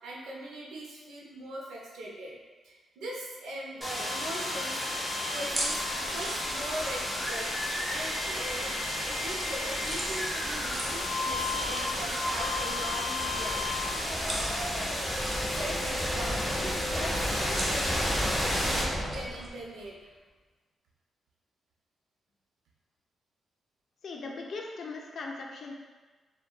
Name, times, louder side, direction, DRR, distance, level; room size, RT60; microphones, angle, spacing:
voice 1, 0.0-2.4 2.6-4.9 5.3-7.5 7.8-8.7 9.0-13.7 15.5-20.1, right 1 dB, 90° right, -4 dB, 0.6 m, -40 dB
sound 1, 3.8-19.6, left 1 dB, ahead, 1.2 m, -31 dB
sound 2, 5.4-19.5, right 1 dB, 35° right, 0.7 m, -42 dB
voice 2, 24.0-25.7, left 3 dB, 65° left, 1 dB, 0.5 m, -39 dB
3.7 x 2.2 x 2.3 m, 1.3 s
cardioid pair, 70°, 0 cm